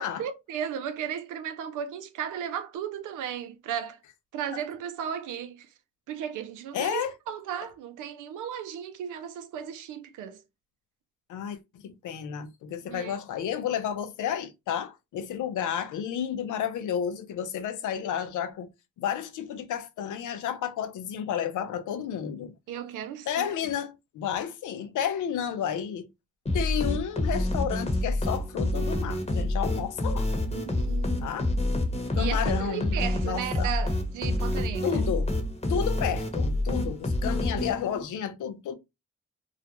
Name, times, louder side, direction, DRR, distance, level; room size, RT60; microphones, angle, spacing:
voice 1, 0.0-4.0 4.3-5.7 6.1-10.4 12.8-13.2 22.7-23.5 30.4-31.3 32.2-35.0, right 9 dB, 90° right, 0.5 m, -35 dB
voice 2, 6.7-7.1 11.3-18.7 19.0-22.5 23.3-26.1 26.5-30.3 31.2-31.5 32.1-32.9 33.2-33.7 34.8-35.3 35.7-38.7, left 9 dB, 85° left, 0.5 m, -31 dB
sound 1, 26.5-38.1, left 1 dB, 20° left, 0.9 m, -28 dB
2.4 x 2.1 x 2.9 m
supercardioid pair, 50°, 30 cm